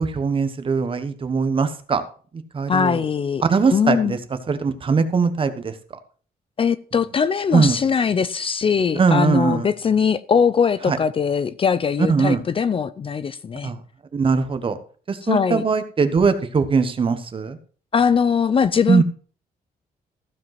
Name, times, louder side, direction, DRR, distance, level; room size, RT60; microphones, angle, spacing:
voice 1, 0.0-2.0 2.5-3.0 3.4-4.2 4.5-5.7 7.5-7.8 9.0-9.7 10.9-11.0 12.1-12.4 13.6-13.8 14.1-14.8 15.1-17.6 18.9-19.0, right 5 dB, 35° right, 1.2 m, -20 dB
voice 2, 2.7-3.4 3.7-4.2 6.6-13.7 15.2-15.6 17.9-19.0, left 6 dB, 35° left, 0.5 m, -21 dB
15.0 x 5.3 x 5.9 m
wide cardioid pair, 150°, 16 cm